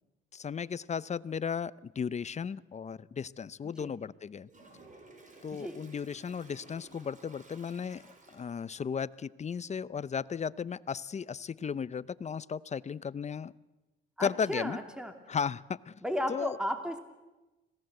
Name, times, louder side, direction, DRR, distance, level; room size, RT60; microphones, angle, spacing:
voice 1, 0.3-4.5 5.4-13.5 14.2-14.8 15.3-16.0 16.3-16.6, left 6 dB, 35° left, 18 dB, 0.7 m, -35 dB
Toilet flush, 4.5-8.8, right 2 dB, 40° right, 4.9 m, -55 dB
voice 2, 14.2-15.1 16.0-17.0, equal, 5° right, 6 dB, 2.7 m, -34 dB
26.0 x 17.5 x 7.9 m, 1.1 s
cardioid pair, 90°, 20 cm